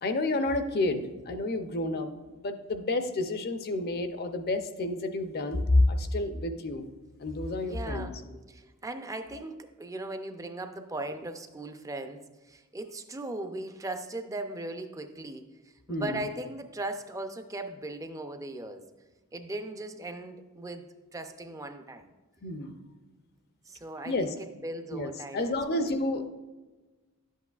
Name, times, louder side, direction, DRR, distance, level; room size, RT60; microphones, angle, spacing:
voice 1, 0.0-6.9 7.2-8.1 15.9-16.2 22.4-22.8 24.0-24.3 24.9-26.3, left 2 dB, 45° left, 8 dB, 0.6 m, -29 dB
voice 2, 7.6-15.5 15.9-18.8 19.3-20.8 21.1-22.1 23.7-25.9, right 2 dB, 15° right, 7 dB, 0.5 m, -38 dB
11.0 x 8.2 x 2.4 m, 1.2 s
head